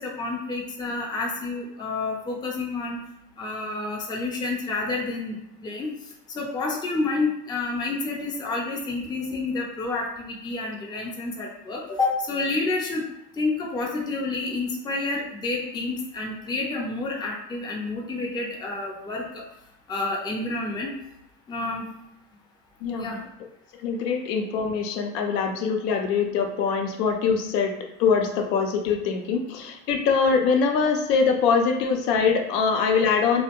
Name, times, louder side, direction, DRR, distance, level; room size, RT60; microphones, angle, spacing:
voice 1, 0.0-3.0 3.4-5.4 5.6-5.9 6.3-13.0 13.4-19.5 19.9-21.0 21.5-21.8 22.9-23.2, left 3 dB, 10° left, -1 dB, 0.4 m, -29 dB
voice 2, 22.8-23.2 23.8-33.4, left 5 dB, 80° left, 4 dB, 0.6 m, -23 dB
2.4 x 2.1 x 2.8 m, 0.84 s
hypercardioid pair, 85°, 49 cm